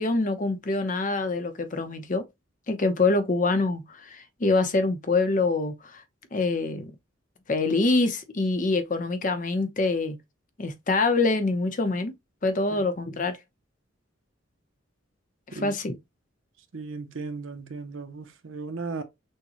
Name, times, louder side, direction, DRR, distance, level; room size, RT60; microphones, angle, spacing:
voice 1, 0.0-2.2 2.7-6.0 6.3-6.9 7.5-10.2 10.6-12.1 12.4-13.4 15.5-16.0, left 3 dB, 40° left, 0.7 m, -25 dB
voice 2, 16.7-19.0, right 4 dB, 80° right, 0.7 m, -36 dB
6.3 x 2.2 x 2.9 m
head